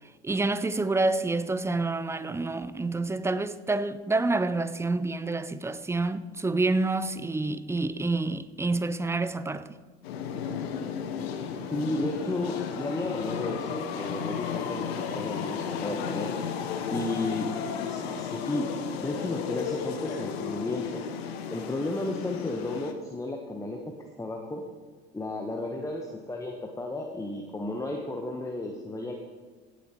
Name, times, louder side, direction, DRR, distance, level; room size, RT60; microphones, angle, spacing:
voice 1, 0.2-9.7, right 3 dB, 10° right, 0.5 m, -28 dB
sound 1, 10.0-22.9, left 7 dB, 75° left, 1.0 m, -34 dB
voice 2, 11.7-16.4 16.9-17.5 17.8-18.7 19.0-21.0 21.5-23.8 24.2-24.6 25.1-29.1, left 2 dB, 10° left, 1.1 m, -33 dB
17.0 x 8.4 x 3.0 m
hypercardioid pair, 70°, 31 cm